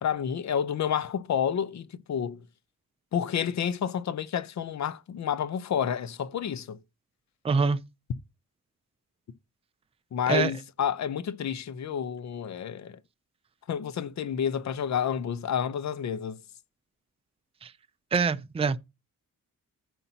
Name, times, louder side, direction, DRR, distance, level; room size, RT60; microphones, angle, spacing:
voice 1, 0.0-2.4 3.1-6.8 10.1-13.0 13.7-16.4, left 8 dB, 55° left, 0.8 m, -29 dB
voice 2, 7.4-7.8 10.3-10.5 17.6-17.7 18.1-18.8, right 5 dB, 20° right, 0.5 m, -24 dB
14.0 x 5.5 x 2.8 m
wide cardioid pair, 170°, 34 cm